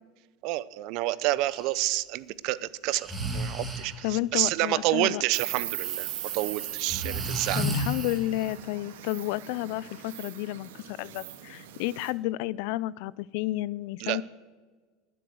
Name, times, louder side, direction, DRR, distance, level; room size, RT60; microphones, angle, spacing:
voice 1, 0.4-3.1 3.3-6.1 6.3-7.6 14.0-14.2, right 17 dB, 50° right, 17 dB, 0.6 m, -28 dB
Breathing, 1.5-1.7 2.9-4.1 5.8-8.5, right 1 dB, 10° right, 1.8 m, -34 dB
voice 2, 4.0-5.2 7.0-7.2 7.5-14.2, left 17 dB, 55° left, 22 dB, 0.3 m, -31 dB
Insect, 5.3-12.1, right 12 dB, 90° right, 1.9 m, -38 dB
20.5 x 7.7 x 7.8 m, 1.5 s
supercardioid pair, 160°, 0 cm